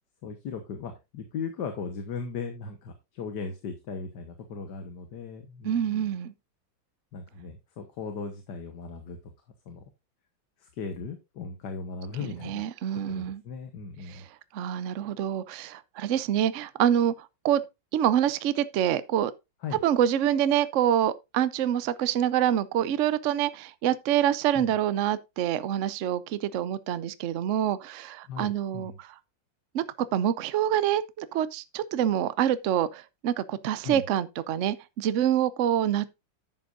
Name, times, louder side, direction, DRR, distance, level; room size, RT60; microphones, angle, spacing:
voice 1, 0.2-6.1 7.1-9.2 9.7-9.8 10.6-12.7 13.1-14.2 19.6-19.8 24.5-24.8 28.3-29.0 33.8-34.0, left 5 dB, 65° left, 1.8 m, -37 dB
voice 2, 5.6-6.3 12.2-13.4 14.1-14.2 14.5-17.6 17.9-19.3 19.8-29.1 29.7-29.8 30.1-36.2, right 10 dB, 70° right, 0.7 m, -26 dB
11.0 x 7.8 x 2.5 m
omnidirectional pair, 2.0 m